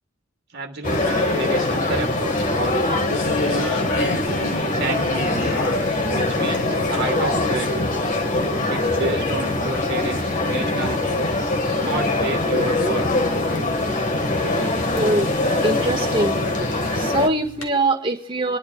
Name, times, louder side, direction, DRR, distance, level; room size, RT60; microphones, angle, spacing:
voice 1, 0.5-2.9 3.4-3.8 4.7-5.6 6.1-7.9 8.7-11.2 11.8-13.1, right 3 dB, 55° right, 4 dB, 1.5 m, -31 dB
sound 1, 0.8-17.3, left 2 dB, 45° left, 1.6 m, -22 dB
sound 2, 0.9-17.7, left 2 dB, 80° left, 2.4 m, -36 dB
voice 2, 15.0-15.3 15.6-16.4 16.9-18.6, right 2 dB, 25° right, 1 dB, 1.6 m, -22 dB
29.5 x 11.0 x 2.4 m, 0.41 s
head